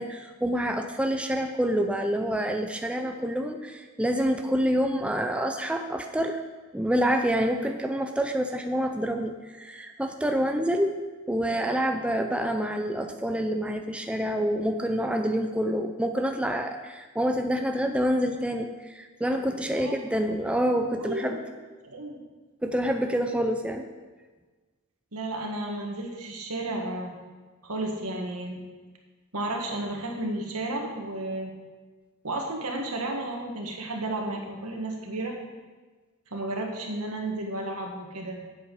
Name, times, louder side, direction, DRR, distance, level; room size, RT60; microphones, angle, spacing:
voice 1, 0.0-6.4 6.7-11.0 11.3-21.4 22.6-23.8, equal, 5° right, 5 dB, 0.4 m, -27 dB
voice 2, 21.0-21.4 21.8-22.2 25.1-27.2 27.6-28.6 29.3-31.5 32.2-35.4 36.3-38.4, right 2 dB, 85° right, 1 dB, 1.7 m, -32 dB
8.4 x 7.9 x 5.4 m, 1.3 s
head